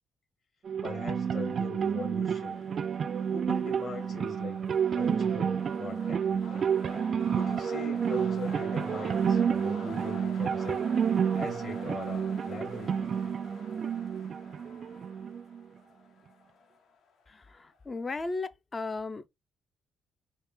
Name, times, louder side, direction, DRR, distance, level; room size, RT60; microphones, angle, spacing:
sound 1, 0.7-15.6, right 7 dB, 50° right, 0.3 m, -30 dB
voice 1, 0.8-2.6 3.3-4.6 4.9-6.7 7.3-10.8 11.3-13.1, left 3 dB, 50° left, 1.9 m, -41 dB
sound 2, 1.2-17.9, left 5 dB, 70° left, 0.9 m, -50 dB
voice 2, 17.3-19.2, left 3 dB, 30° left, 0.3 m, -36 dB
4.1 x 2.1 x 3.5 m
cardioid pair, 90°, 0 cm